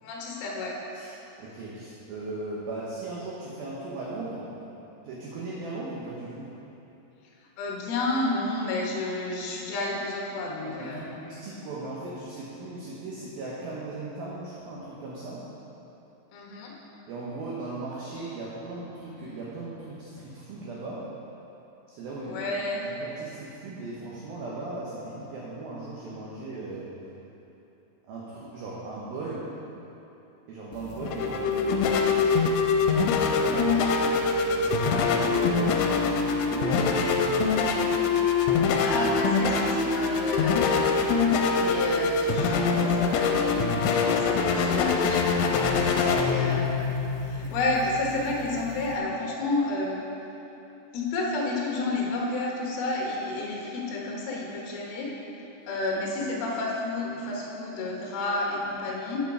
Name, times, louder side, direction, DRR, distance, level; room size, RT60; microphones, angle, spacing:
voice 1, 0.0-0.8 7.6-11.2 16.3-16.8 22.2-22.9 38.8-41.0 41.6-45.4 46.2-46.8 47.2-50.0 50.9-55.1 55.7-59.2, left 2 dB, 65° left, -2 dB, 2.8 m, -30 dB
voice 2, 1.4-4.5 5.0-6.5 10.6-15.5 17.1-21.1 21.9-22.4 22.8-26.9 28.1-29.5 30.5-32.3 33.0-33.8 34.5-37.8 45.8-46.3, right 2 dB, 70° right, -7 dB, 2.4 m, -37 dB
sound 1, 30.7-49.0, left 4 dB, 85° left, 3.1 m, -24 dB
9.9 x 6.7 x 4.9 m, 3.0 s
omnidirectional pair, 5.4 m